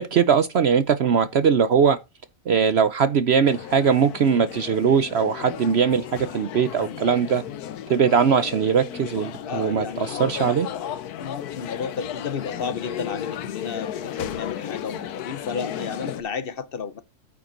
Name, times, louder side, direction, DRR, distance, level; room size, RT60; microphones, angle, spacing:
voice 1, 0.0-2.0 2.5-6.0 6.3-7.4 7.9-10.7, right 6 dB, 60° right, 0.7 m, -20 dB
sound 1, 3.4-16.2, left 10 dB, 75° left, 1.3 m, -34 dB
voice 2, 6.7-7.0 9.5-10.2 11.1-17.0, left 6 dB, 55° left, 0.7 m, -32 dB
9.4 x 7.2 x 3.8 m
omnidirectional pair, 1.7 m